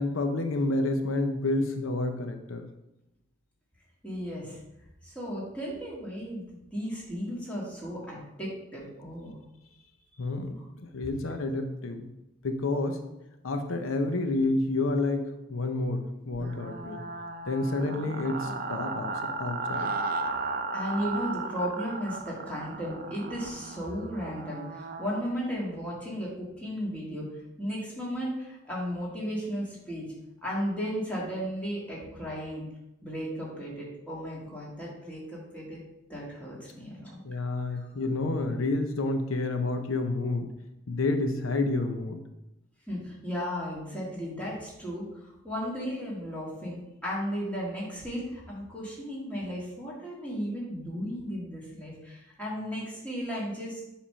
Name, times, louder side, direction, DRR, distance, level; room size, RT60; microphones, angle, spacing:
voice 1, 0.0-2.7 10.2-12.1 12.4-13.1 13.4-17.0 17.5-19.9 37.2-40.5 40.9-42.2, left 2 dB, 90° left, 6 dB, 0.7 m, -29 dB
voice 2, 4.0-4.6 5.0-6.4 6.7-9.3 20.7-27.3 27.6-30.1 30.4-32.6 33.0-35.8 36.1-37.2 37.7-37.9 42.9-53.8, equal, 5° left, -6 dB, 2.0 m, -35 dB
sound 1, 16.3-25.2, right 3 dB, 45° right, 0.5 m, -35 dB
7.4 x 3.6 x 5.5 m, 0.89 s
head